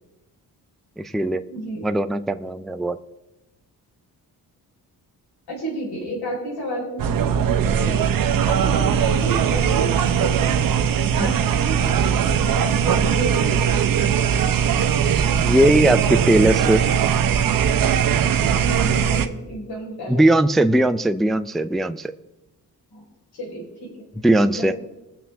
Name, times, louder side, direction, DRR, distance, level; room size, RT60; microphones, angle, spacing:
voice 1, 1.0-1.4 1.8-3.0 11.2-11.3 15.4-16.9 20.1-22.1 24.2-24.7, right 1 dB, ahead, 9 dB, 0.3 m, -19 dB
voice 2, 1.5-1.9 5.5-7.3 7.6-8.1 8.5-10.4 11.2-14.4 18.4-20.2 22.9-23.0 23.3-24.7, equal, 85° left, -1 dB, 4.1 m, -32 dB
sound 1, 7.0-19.3, right 8 dB, 60° right, 0.8 m, -20 dB
21.0 x 7.4 x 3.4 m, 0.99 s
cardioid pair, 130°, 38 cm